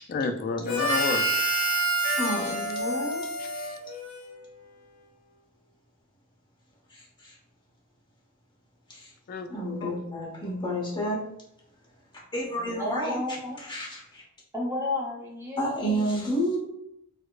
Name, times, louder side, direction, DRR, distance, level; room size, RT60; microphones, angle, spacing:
voice 1, 0.1-1.6 3.4-3.8 9.3-9.5 9.8-9.9, left 4 dB, 45° left, 7 dB, 0.3 m, -31 dB
Harmonica, 0.6-4.4, right 1 dB, 70° left, 0.9 m, -28 dB
voice 2, 2.2-3.3 6.9-7.4 8.9-9.1 9.5-11.2 12.1-13.2 13.6-14.2 15.6-16.6, equal, 20° left, -4 dB, 1.0 m, -30 dB
voice 3, 12.7-13.6 14.5-16.1, left 2 dB, 15° right, -2 dB, 0.7 m, -32 dB
4.1 x 2.0 x 2.3 m, 0.74 s
head